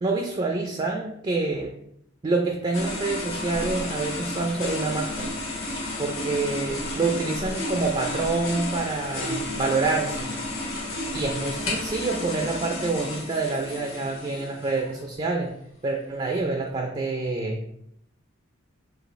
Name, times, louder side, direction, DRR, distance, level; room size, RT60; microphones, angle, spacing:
voice 1, 0.0-1.7 2.2-5.3 6.0-10.3 11.1-15.5 15.8-17.6, right 3 dB, 25° right, 1 dB, 0.4 m, -27 dB
sound 1, 2.7-15.0, left 2 dB, 75° left, 1.5 m, -32 dB
5.2 x 2.4 x 3.0 m, 0.74 s
head